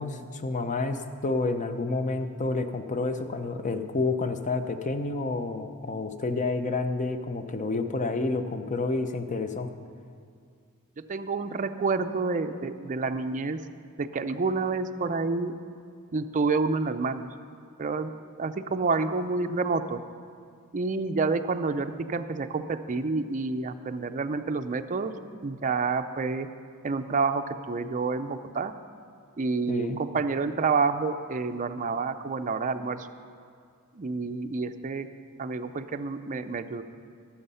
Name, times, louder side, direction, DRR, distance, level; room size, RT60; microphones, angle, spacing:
voice 1, 0.0-9.7 29.7-30.0, left 3 dB, 35° left, 8 dB, 0.7 m, -29 dB
voice 2, 11.1-13.6 14.0-15.5 16.1-17.3 17.8-18.1 18.4-20.0 20.7-25.1 25.4-26.5 26.8-28.7 29.4-33.1 34.0-35.1 35.4-36.8, right 4 dB, 35° right, 8 dB, 0.4 m, -28 dB
17.5 x 7.1 x 5.6 m, 2.2 s
head